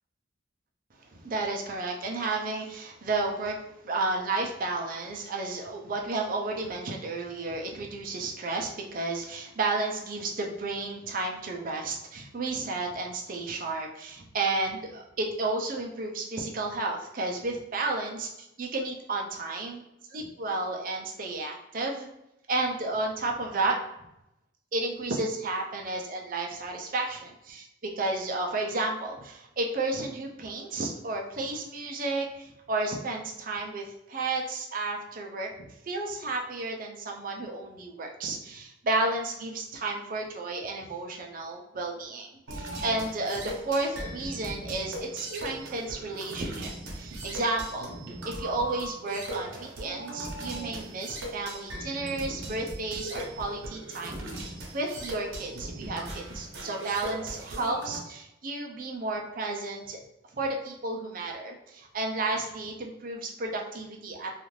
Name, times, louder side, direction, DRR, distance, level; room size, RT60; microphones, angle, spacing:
voice 1, 1.1-3.6 3.8-19.8 20.1-22.1 22.5-23.8 24.7-27.7 28.0-47.9 48.2-60.0 60.3-64.3, right 2 dB, 45° right, 1 dB, 0.4 m, -32 dB
sound 1, 42.5-58.0, right 1 dB, 85° right, 0.7 m, -39 dB
2.4 x 2.4 x 3.1 m, 0.87 s
head